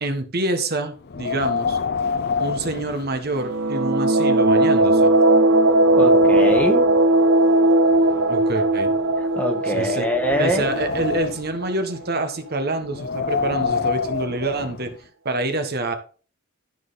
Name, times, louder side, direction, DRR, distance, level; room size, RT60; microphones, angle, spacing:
voice 1, 0.0-1.8 2.4-5.1 8.3-8.9 9.7-10.1 10.4-14.9 15.2-16.0, right 2 dB, 50° right, 7 dB, 1.4 m, -26 dB
Wind, 1.0-3.7 4.0-4.1 4.8-4.9 5.4-7.0 7.9-9.4 10.0-11.6 12.8-15.0, left 5 dB, 50° left, 0.6 m, -28 dB
sound 1, 3.4-12.0, right 2 dB, 75° right, 0.7 m, -18 dB
voice 2, 6.0-6.8 9.3-10.8, equal, 5° left, 4 dB, 1.5 m, -23 dB
12.5 x 6.0 x 4.2 m, 0.39 s
head